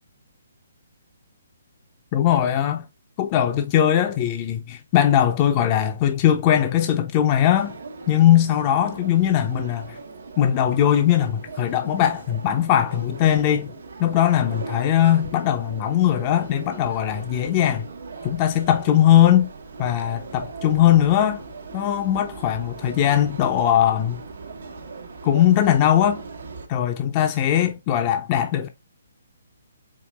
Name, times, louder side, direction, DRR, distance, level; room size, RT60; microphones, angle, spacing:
voice 1, 2.1-2.8 3.2-7.8 8.1-10.0 10.4-13.7 14.0-17.9 18.2-19.5 19.8-21.4 21.7-24.2 25.2-26.3 26.7-28.7, left 11 dB, 30° left, 0.5 m, -20 dB
sound 1, 7.6-26.7, right 4 dB, 75° right, 1.1 m, -39 dB
4.7 x 3.2 x 2.3 m
hypercardioid pair, 150°, 0 cm